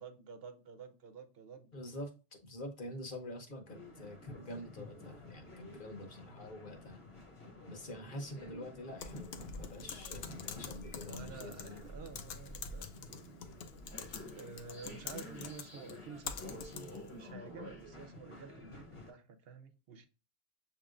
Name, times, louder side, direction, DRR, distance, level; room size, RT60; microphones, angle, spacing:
voice 1, 0.0-1.7 6.1-6.4 8.2-8.4 11.1-13.4 14.3-20.1, right 5 dB, 75° right, 0.9 m, -51 dB
voice 2, 1.7-2.1 2.4-7.0 7.7-11.8 12.1-12.2, left 1 dB, 55° left, 1.1 m, -46 dB
sound 1, 3.7-19.1, left 2 dB, 35° left, 0.9 m, -51 dB
Typing, 9.0-17.1, left 5 dB, 75° left, 0.8 m, -46 dB
7.0 x 2.9 x 2.4 m
omnidirectional pair, 1.0 m